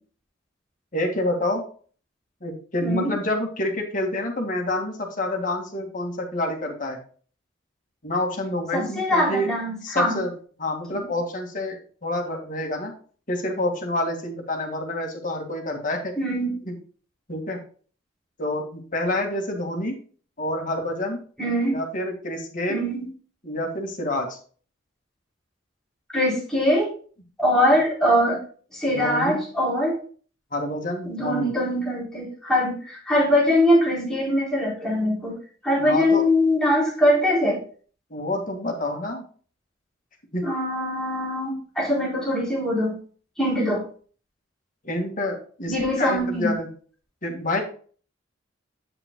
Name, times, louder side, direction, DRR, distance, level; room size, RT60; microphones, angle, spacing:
voice 1, 0.9-1.6 2.4-7.0 8.0-9.5 9.8-10.3 10.6-11.8 12.0-12.9 13.3-16.1 16.7-16.8 17.3-17.6 18.4-20.0 20.4-21.2 21.7-22.9 23.4-24.4 28.9-29.4 30.5-31.5 35.8-36.2 38.1-39.2 40.3-40.5 44.8-46.7 47.2-47.6, left 1 dB, 45° left, 1 dB, 2.0 m, -27 dB
voice 2, 2.8-3.1 8.7-10.2 10.9-11.0 16.2-16.5 21.4-21.8 22.7-23.0 26.1-26.9 27.4-28.4 28.7-30.0 31.0-35.3 35.6-37.6 40.4-42.9 43.4-43.8 45.7-46.5, left 1 dB, 5° left, -5 dB, 4.0 m, -22 dB
8.1 x 7.6 x 2.2 m, 0.42 s
head